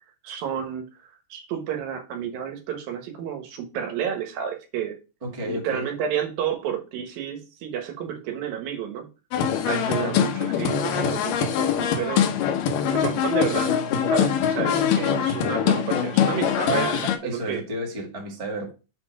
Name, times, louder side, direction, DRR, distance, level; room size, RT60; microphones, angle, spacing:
voice 1, 0.2-0.9 1.3-5.0 5.5-9.1 9.7-12.3 12.9-13.7 14.1-17.6, right 8 dB, 85° right, 3.1 m, -31 dB
voice 2, 5.2-5.9 14.8-15.3 16.9-18.7, equal, 20° right, 0.9 m, -32 dB
sound 1, 9.3-17.2, left 8 dB, 75° left, 2.4 m, -23 dB
7.4 x 4.3 x 4.6 m
omnidirectional pair, 4.0 m